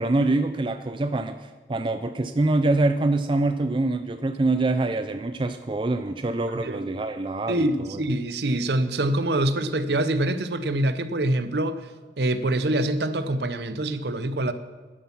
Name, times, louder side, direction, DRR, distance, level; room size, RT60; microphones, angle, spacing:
voice 1, 0.0-1.4 1.7-8.0, right 2 dB, 25° right, 0.4 m, -25 dB
voice 2, 7.5-11.8 12.2-14.5, right 1 dB, 65° right, 0.8 m, -25 dB
11.5 x 9.4 x 6.0 m
head